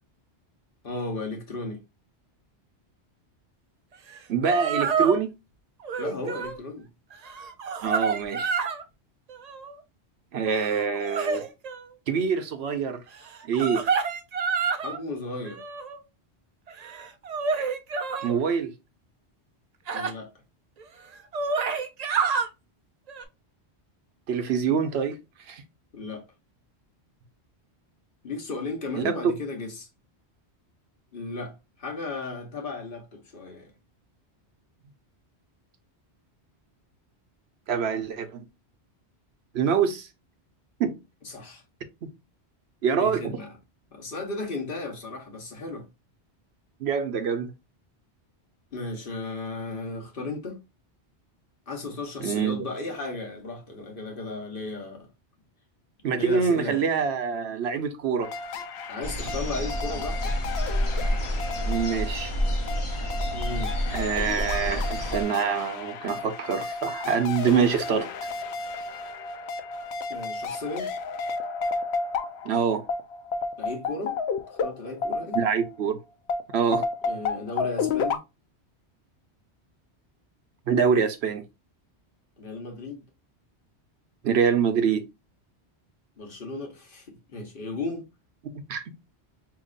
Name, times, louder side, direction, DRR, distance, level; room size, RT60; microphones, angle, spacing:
voice 1, 0.8-1.8 6.0-6.9 14.7-15.6 19.9-20.3 25.9-26.2 28.2-29.9 31.1-33.7 41.2-41.6 43.0-43.5 43.9-45.9 48.7-50.6 51.7-55.1 56.2-56.9 58.9-60.3 63.3-63.7 70.1-70.9 73.6-74.2 74.5-75.4 77.0-78.2 82.4-83.0 86.2-88.1, left 3 dB, 55° left, 1.2 m, -35 dB
sound 1, 4.1-4.2 4.5-5.2 5.8-6.6 7.1-8.8 9.3-9.8 10.5-11.8 13.2-15.0 15.4-16.0 16.7-18.3 19.9-20.1 20.8-20.9 21.1-22.5 23.1-23.2, right 5 dB, 50° right, 0.5 m, -28 dB
voice 2, 4.3-5.3 7.8-8.5 10.3-11.5 12.1-13.0 13.5-13.9 18.2-18.7 24.3-25.2 25.5-25.6 29.0-29.2 37.7-38.5 39.5-40.1 40.8-41.0 42.8-43.4 46.8-47.5 52.2-52.7 56.0-58.3 61.7-62.3 63.9-68.1 72.4-72.8 75.3-76.0 76.5-76.8 80.7-81.4 84.2-85.1 88.7-88.8, right 6 dB, 75° right, 1.0 m, -25 dB
sound 2, 58.2-75.8 76.3-78.2, left 4 dB, 70° left, 0.8 m, -32 dB
sound 3, 59.0-65.2, equal, 30° left, 0.8 m, -29 dB
5.1 x 2.9 x 2.4 m
omnidirectional pair, 1.1 m